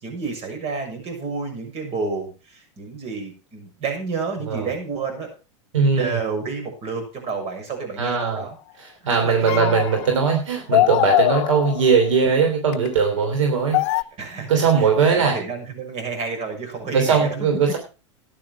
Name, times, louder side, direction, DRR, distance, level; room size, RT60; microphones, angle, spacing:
voice 1, 0.0-5.3 5.9-8.6 9.1-9.8 14.2-14.5 14.8-17.3 17.7-17.8, right 4 dB, 40° right, 5 dB, 6.6 m, -30 dB
voice 2, 5.7-6.2 8.0-8.5 8.8-13.8 14.4-15.4 16.9-17.8, right 5 dB, 85° right, 3 dB, 3.1 m, -20 dB
sound 1, 8.2-8.4 9.5-10.3 10.7-12.0 12.7-12.9 13.7-14.0, left 18 dB, 60° left, 0.6 m, -22 dB
13.0 x 10.0 x 4.7 m, 0.33 s
hypercardioid pair, 105°, 16 cm